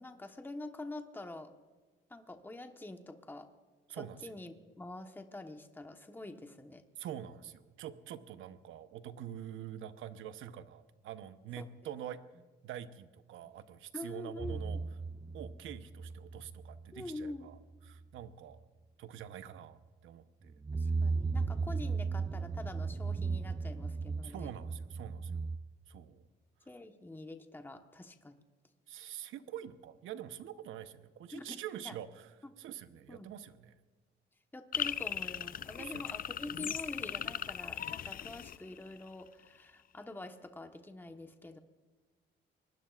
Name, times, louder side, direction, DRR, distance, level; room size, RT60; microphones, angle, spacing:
voice 1, 0.0-1.5 2.1-3.5 3.9-6.8 11.6-11.7 13.9-14.6 16.9-17.5 20.7-24.5 26.7-28.4 31.3-31.6 31.8-31.9 32.4-32.5 33.1-33.3 34.5-41.6, left 2 dB, 10° left, 6 dB, 1.2 m, -46 dB
voice 2, 3.9-4.3 7.0-12.2 12.6-14.8 15.3-17.6 17.9-18.6 19.0-20.6 24.2-25.4 25.9-26.3 28.9-32.3 32.6-33.7 35.8-36.0, right 10 dB, 85° right, 11 dB, 0.9 m, -46 dB
sound 1, 14.4-17.0 17.2-17.6 17.9-18.0 20.5-25.6, right 4 dB, 20° right, 0.5 m, -36 dB
sound 2, 34.7-39.2, left 9 dB, 45° left, 0.5 m, -38 dB
25.0 x 19.5 x 2.5 m, 1.3 s
cardioid pair, 90°, 20 cm